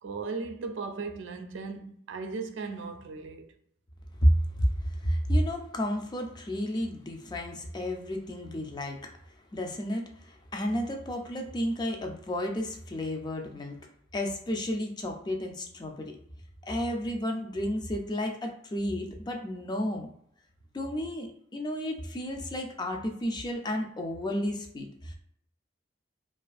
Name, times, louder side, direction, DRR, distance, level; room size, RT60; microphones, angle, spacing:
voice 1, 0.0-3.5, right 4 dB, 90° right, 0.4 m, -37 dB
voice 2, 4.2-9.1 9.5-13.8 14.1-16.2 16.6-20.1 20.7-25.1, equal, 25° left, 0.3 m, -31 dB
2.5 x 2.4 x 2.3 m
head